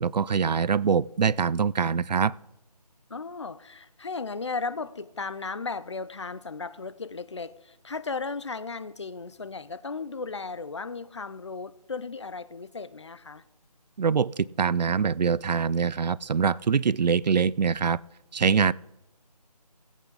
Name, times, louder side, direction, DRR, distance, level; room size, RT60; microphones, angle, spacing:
voice 1, 0.0-2.3 14.0-18.0 18.3-18.7, right 6 dB, 80° right, 0.4 m, -24 dB
voice 2, 3.1-13.4, left 4 dB, 45° left, 0.5 m, -35 dB
16.5 x 8.3 x 3.9 m
figure-of-eight pair, 165°, 21 cm